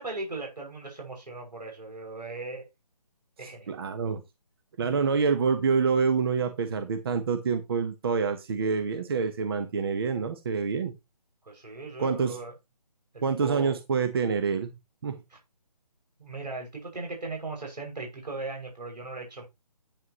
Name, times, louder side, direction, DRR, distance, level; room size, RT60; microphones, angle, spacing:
voice 1, 0.0-2.6 3.4-3.7 4.8-5.0 11.5-12.5 13.1-13.8 16.2-19.4, right 3 dB, 80° right, 6.6 m, -38 dB
voice 2, 3.4-4.2 4.8-10.9 12.0-12.4 13.2-14.7 15.0-15.2, right 5 dB, 35° right, 1.2 m, -27 dB
10.5 x 8.4 x 3.1 m
figure-of-eight pair, 160°, 21 cm